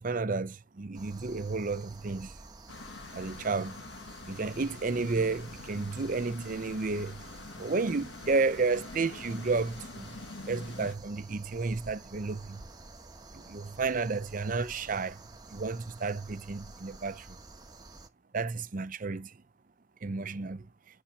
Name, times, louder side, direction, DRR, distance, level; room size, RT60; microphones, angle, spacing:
voice 1, 0.0-2.3 3.1-3.8 4.3-7.2 7.6-10.1 10.5-12.6 13.3-15.2 15.5-17.4 18.3-19.3 20.0-20.7, right 3 dB, 45° right, 0.6 m, -32 dB
sound 1, 0.9-18.1, right 2 dB, 20° right, 1.1 m, -50 dB
sound 2, 2.7-10.9, left 3 dB, 75° left, 1.5 m, -46 dB
8.8 x 5.5 x 5.7 m
head